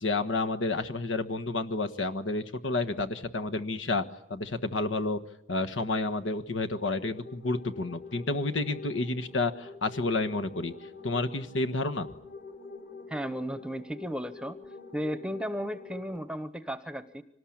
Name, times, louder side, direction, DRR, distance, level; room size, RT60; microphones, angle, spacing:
voice 1, 0.0-4.0 4.3-5.2 5.5-10.7 11.0-12.1, left 2 dB, 85° left, 8 dB, 1.4 m, -30 dB
sound 1, 6.7-16.2, left 3 dB, 50° left, 3.9 m, -46 dB
voice 2, 13.1-14.6 14.9-17.2, equal, 5° right, 11 dB, 0.9 m, -34 dB
25.0 x 19.0 x 8.7 m, 0.78 s
head